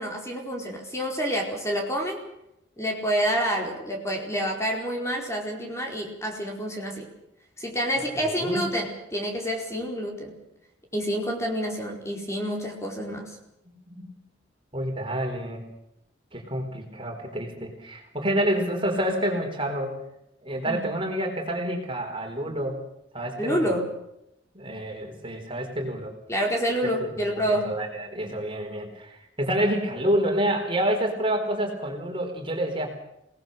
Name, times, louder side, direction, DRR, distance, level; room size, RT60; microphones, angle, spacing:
voice 1, 0.0-2.2 2.8-7.1 7.6-10.4 10.9-13.4 20.6-20.8 23.4-23.9 26.3-27.7, equal, 15° left, 1 dB, 4.7 m, -28 dB
voice 2, 8.2-8.6 13.7-14.1 14.7-15.6 16.3-20.0 20.4-22.8 23.1-23.7 24.5-26.1 27.0-27.1 27.4-32.9, right 1 dB, 25° right, 2 dB, 4.3 m, -28 dB
27.5 x 19.5 x 6.7 m, 0.81 s
head